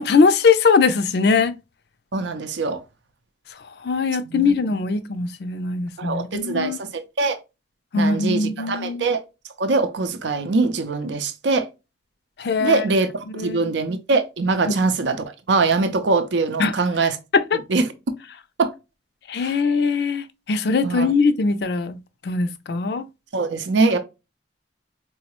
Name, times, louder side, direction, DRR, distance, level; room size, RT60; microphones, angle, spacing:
voice 1, 0.0-1.5 3.8-6.8 7.9-9.0 12.4-12.8 13.3-13.8 16.6-16.7 17.3-17.6 19.3-22.0 22.2-23.1, left 4 dB, 60° left, 0.4 m, -21 dB
voice 2, 2.1-2.8 4.3-4.5 6.0-7.4 7.9-9.2 9.6-11.7 12.6-17.2 17.7-17.9 18.6-18.7 19.4-19.5 20.8-21.1 23.3-24.0, right 3 dB, 75° right, 0.5 m, -22 dB
4.6 x 2.0 x 2.9 m
head